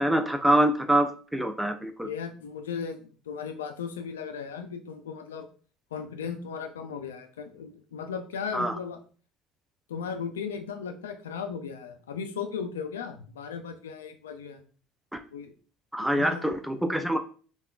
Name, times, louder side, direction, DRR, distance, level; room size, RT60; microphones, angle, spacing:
voice 1, 0.0-2.1 8.5-8.7 15.9-17.2, right 1 dB, 5° right, 6 dB, 0.4 m, -25 dB
voice 2, 2.0-5.5 5.9-9.0 9.9-14.6 15.3-15.5 16.0-16.5, left 6 dB, 90° left, 8 dB, 0.3 m, -36 dB
3.5 x 2.3 x 2.2 m, 0.40 s
hypercardioid pair, 70°, 0 cm